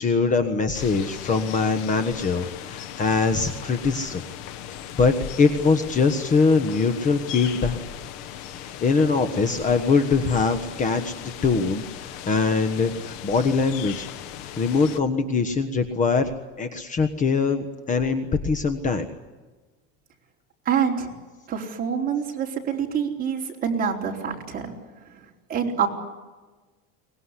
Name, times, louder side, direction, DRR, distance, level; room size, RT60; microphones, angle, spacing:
voice 1, 0.0-4.2 5.0-7.8 8.5-14.1 14.6-16.3 16.6-19.1, left 4 dB, 25° left, 8 dB, 1.3 m, -22 dB
sound 1, 0.7-15.0, left 11 dB, 60° left, 1.6 m, -38 dB
voice 2, 20.6-21.1 21.5-24.7 25.5-25.9, right 7 dB, 25° right, 0 dB, 4.3 m, -26 dB
23.5 x 20.5 x 9.9 m, 1.3 s
cardioid pair, 155°, 33 cm